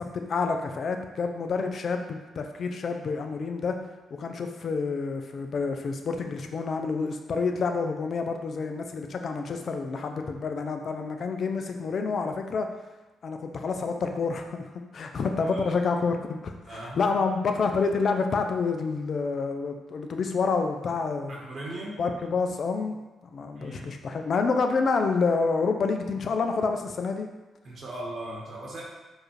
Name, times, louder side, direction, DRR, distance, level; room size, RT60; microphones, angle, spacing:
voice 1, 0.1-3.8 4.2-12.7 13.2-21.4 22.0-23.0 23.2-27.3, left 4 dB, 60° left, 5 dB, 0.4 m, -28 dB
voice 2, 15.4-15.7 16.6-17.0 21.3-22.0 23.6-24.0 27.6-28.8, right 1 dB, 60° right, -3 dB, 1.0 m, -38 dB
4.6 x 2.6 x 3.1 m, 1.2 s
supercardioid pair, 55°, 0 cm